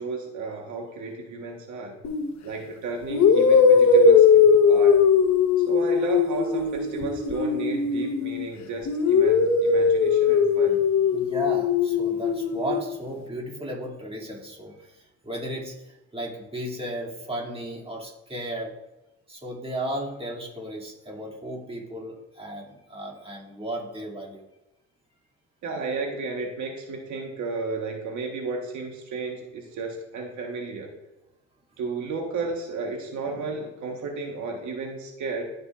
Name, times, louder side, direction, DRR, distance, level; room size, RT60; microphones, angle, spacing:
voice 1, 0.0-2.0 2.4-5.0 5.7-10.8 25.6-30.9 31.8-35.5, right 4 dB, 75° right, 2 dB, 1.3 m, -33 dB
sound 1, 2.0-2.3 3.1-8.4 8.9-12.8, left 5 dB, 65° left, 1.0 m, -19 dB
voice 2, 11.1-18.7 19.3-24.5, equal, 20° right, -3 dB, 2.3 m, -35 dB
15.5 x 5.5 x 2.4 m, 0.98 s
cardioid pair, 90°, 30 cm